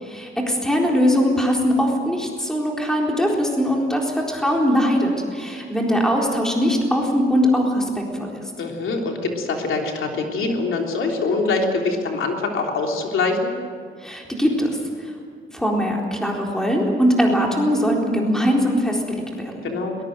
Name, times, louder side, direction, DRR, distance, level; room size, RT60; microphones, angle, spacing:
voice 1, 0.1-8.3 14.0-15.1 15.5-19.6, equal, 5° left, -1 dB, 4.0 m, -21 dB
voice 2, 8.6-13.5 19.6-19.9, left 3 dB, 75° left, 1 dB, 3.5 m, -24 dB
22.0 x 21.0 x 7.8 m, 2.2 s
wide cardioid pair, 165°, 21 cm